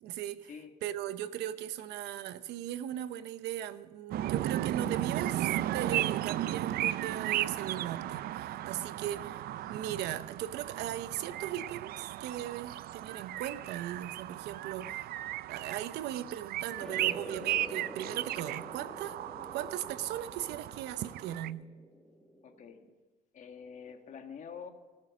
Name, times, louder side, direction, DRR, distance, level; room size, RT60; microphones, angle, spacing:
voice 1, 0.0-0.5 0.8-15.1 15.5-19.2 19.5-21.7, right 11 dB, 85° right, 13 dB, 0.8 m, -38 dB
sound 1, 4.1-21.5, right 13 dB, 65° right, 0.4 m, -35 dB
sound 2, 16.8-22.9, equal, 5° left, 1.5 m, -48 dB
voice 2, 22.4-22.8 23.3-24.7, left 6 dB, 50° left, 5 dB, 1.8 m, -46 dB
19.0 x 7.5 x 6.3 m, 1.3 s
cardioid pair, 110°, 17 cm